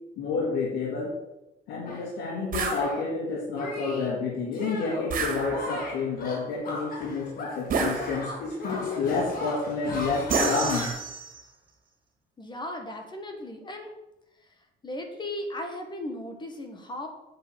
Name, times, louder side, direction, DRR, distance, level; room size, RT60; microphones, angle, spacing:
voice 1, 0.2-1.2 1.7-10.9, left 4 dB, 85° left, -1 dB, 1.9 m, -29 dB
Shatter, 1.9-2.1 2.6-3.1 3.6-4.1 4.5-5.1 5.5-7.7 7.9-10.9, left 2 dB, 55° left, 3.1 m, -36 dB
sound 1, 2.5-2.8 5.1-5.9 7.7-8.5 10.3-11.4, right 4 dB, 55° right, 2.2 m, -29 dB
voice 2, 12.4-13.9 14.8-17.1, left 1 dB, 25° left, 4 dB, 1.5 m, -36 dB
8.0 x 5.6 x 7.4 m, 0.93 s
cardioid pair, 110°, 17 cm